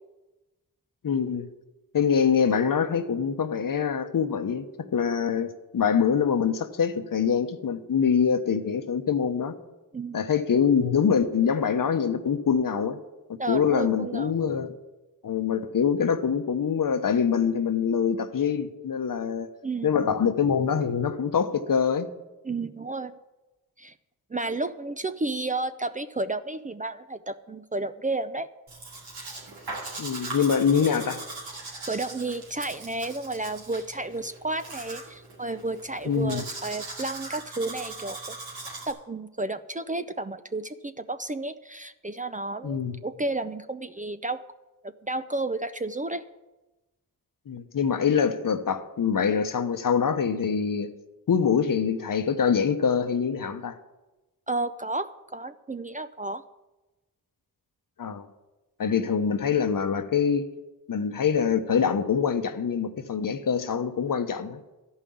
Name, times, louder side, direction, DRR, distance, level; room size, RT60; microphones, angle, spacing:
voice 1, 1.0-1.5 1.9-4.7 4.9-9.5 10.1-13.0 13.3-14.7 15.2-19.5 19.8-22.1 30.0-31.2 36.0-36.4 42.6-43.0 47.5-50.9 51.3-53.8 58.0-58.3 58.8-60.5 60.9-64.6, left 7 dB, 55° left, 1.0 m, -24 dB
voice 2, 13.4-14.3 19.6-20.1 22.4-23.1 23.8-23.9 24.3-28.5 31.9-38.4 38.8-44.4 44.8-46.2 54.5-56.4, right 2 dB, 20° right, 0.5 m, -32 dB
Domestic sounds home sounds, 28.7-38.9, right 3 dB, 90° right, 2.5 m, -40 dB
12.5 x 5.6 x 8.5 m
cardioid pair, 50°, 38 cm